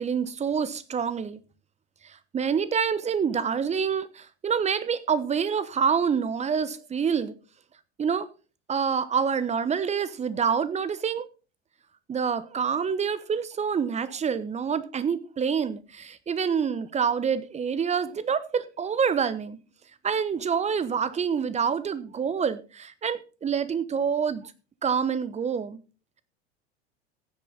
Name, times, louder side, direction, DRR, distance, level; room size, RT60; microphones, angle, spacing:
voice 1, 0.0-1.4 2.3-7.3 8.0-8.3 8.7-11.3 12.1-19.6 20.0-24.5 24.8-25.8, right 6 dB, 20° right, 1.1 m, -27 dB
15.5 x 8.2 x 4.0 m
figure-of-eight pair, 80°, 32 cm